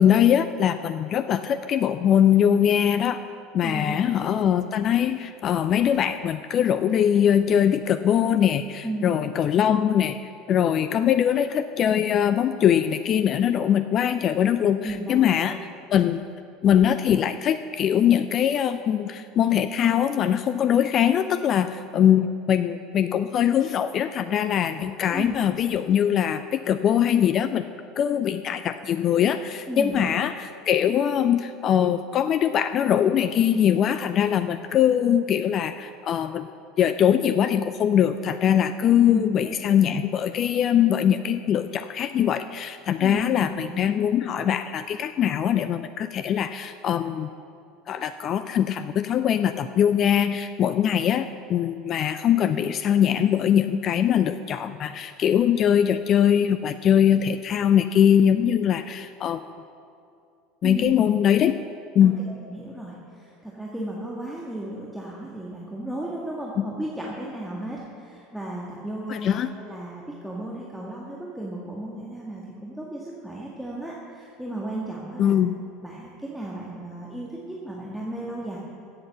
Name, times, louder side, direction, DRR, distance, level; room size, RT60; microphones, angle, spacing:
voice 1, 0.0-3.2 3.5-10.2 10.5-15.6 15.9-16.2 16.6-27.7 28.0-36.5 36.8-47.3 47.9-59.5 60.6-61.6 61.9-62.1 66.6-66.7 69.1-69.5 75.2-75.5, left 9 dB, 40° left, 11 dB, 0.4 m, -22 dB
voice 2, 3.6-4.2 8.8-9.1 14.8-15.6 25.1-25.4 29.7-30.1 39.1-39.6 43.0-43.9 60.6-60.9 62.0-75.3 75.8-78.6, right 1 dB, ahead, -5 dB, 1.9 m, -34 dB
15.5 x 7.8 x 7.1 m, 2.5 s
figure-of-eight pair, 70°, 0 cm